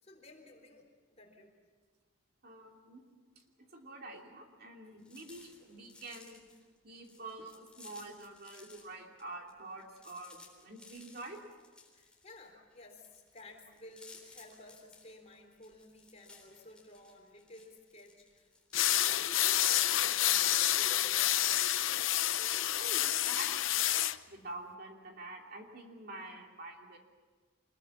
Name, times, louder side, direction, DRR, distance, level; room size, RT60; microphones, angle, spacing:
voice 1, 0.0-1.5 11.9-18.5 19.0-21.3, left 2 dB, 35° left, 2 dB, 3.9 m, -54 dB
voice 2, 2.4-3.0 3.4-3.5 3.7-6.4 6.8-11.4 22.2-23.5 24.3-27.0, right 2 dB, 50° right, 2 dB, 2.8 m, -47 dB
sound 1, 5.0-8.9 9.2-23.2, left 3 dB, 5° left, 3.8 m, -58 dB
sound 2, 18.7-24.2, left 13 dB, 80° left, 0.7 m, -29 dB
25.5 x 21.5 x 7.2 m, 1.5 s
head